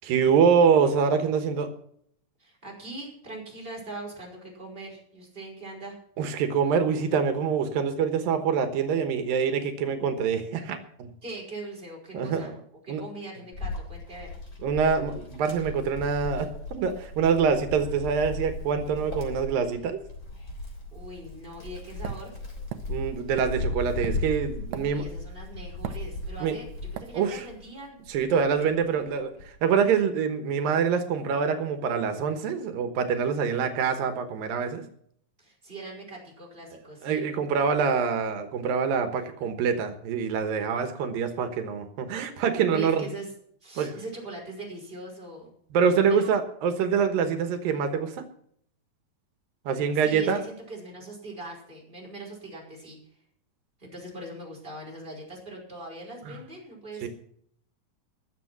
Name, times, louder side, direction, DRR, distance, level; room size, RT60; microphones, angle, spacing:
voice 1, 0.0-1.7 6.2-11.1 12.1-12.5 12.9-13.0 14.6-16.5 16.8-20.0 22.9-25.0 26.4-26.5 27.1-27.4 28.1-34.8 37.0-43.1 43.8-43.9 45.7-48.2 49.7-50.4 56.3-56.4 57.0-57.1, right 6 dB, 85° right, 7 dB, 3.0 m, -25 dB
voice 2, 2.4-6.0 11.2-12.5 12.8-14.3 20.6-22.3 24.7-28.0 35.4-37.2 42.7-43.3 43.6-45.5 46.1-46.3 49.9-53.2 53.8-57.1, right 2 dB, 15° right, -3 dB, 5.2 m, -41 dB
Wind, 13.5-27.6 28.1-29.6, left 2 dB, 25° left, 3.6 m, -36 dB
sound 1, 22.0-25.3 25.8-26.5 27.0-27.2, right 10 dB, 70° right, 1.7 m, -38 dB
20.5 x 7.4 x 6.0 m, 0.65 s
omnidirectional pair, 4.0 m